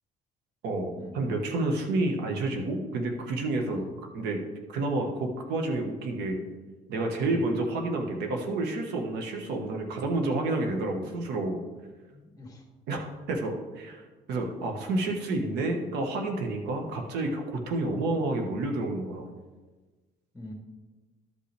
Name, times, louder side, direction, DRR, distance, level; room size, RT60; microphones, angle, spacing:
voice 1, 0.6-3.8 4.1-4.4 4.7-6.4 6.9-11.6 12.9-19.3, right 2 dB, 85° right, 3 dB, 1.4 m, -29 dB
voice 2, 12.1-12.6 20.3-20.5, left 2 dB, 20° left, 1 dB, 1.8 m, -43 dB
13.0 x 5.4 x 3.4 m, 1.3 s
cardioid pair, 110°, 17 cm